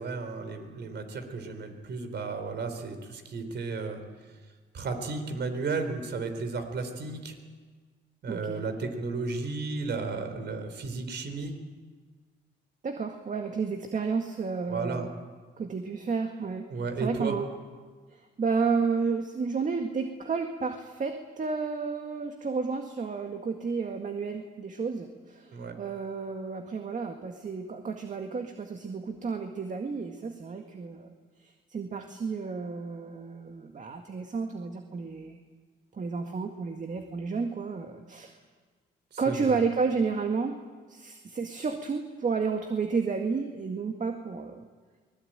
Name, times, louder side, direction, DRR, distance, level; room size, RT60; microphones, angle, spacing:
voice 1, 0.0-4.0 4.7-7.4 8.2-11.5 14.7-15.1 16.7-17.4 25.5-25.8 39.1-39.6, right 4 dB, 60° right, 7 dB, 4.1 m, -33 dB
voice 2, 8.3-8.6 12.8-15.1 15.6-16.7 17.0-17.6 18.1-31.1 31.4-35.4 35.9-38.4 39.2-40.6 40.9-44.7, right 5 dB, 40° right, 5 dB, 1.9 m, -31 dB
24.0 x 20.0 x 9.0 m, 1.5 s
cardioid pair, 90°, 20 cm